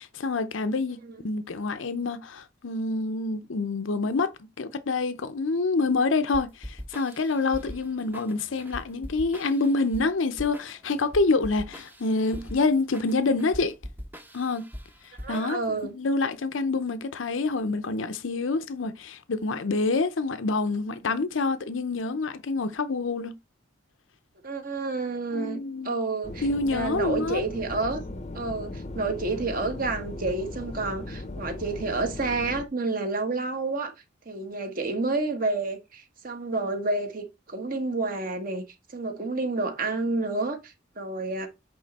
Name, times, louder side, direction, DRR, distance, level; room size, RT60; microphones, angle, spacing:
voice 1, 0.0-4.3 4.6-13.8 14.3-14.7 15.3-15.6 15.9-23.4 25.3-26.0 26.4-27.4, left 3 dB, 85° left, 0.7 m, -27 dB
sound 1, 6.3-15.9, equal, 10° right, 0.7 m, -42 dB
voice 2, 15.2-15.9 24.4-28.0 28.3-33.9 34.2-38.6 38.9-41.5, right 3 dB, 45° right, 1.4 m, -29 dB
sound 2, 26.2-32.7, left 2 dB, 35° left, 0.6 m, -38 dB
8.6 x 3.3 x 4.1 m
head